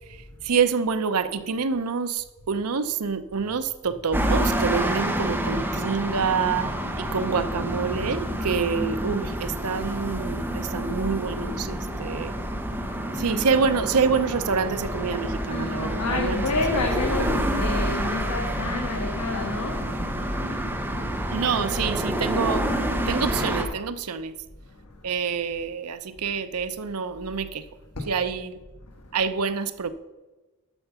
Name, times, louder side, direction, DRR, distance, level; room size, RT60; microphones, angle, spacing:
voice 1, 0.1-6.7 7.0-12.3 13.1-16.9 21.3-22.7 23.1-24.3 25.0-27.6 28.0-28.6 29.1-29.9, right 5 dB, 85° right, 11 dB, 0.7 m, -27 dB
sound 1, 4.1-23.7, equal, 10° right, 1.0 m, -28 dB
voice 2, 15.5-19.8 28.0-28.1, left 3 dB, 90° left, 1 dB, 1.4 m, -29 dB
11.5 x 6.8 x 5.6 m, 1.2 s
head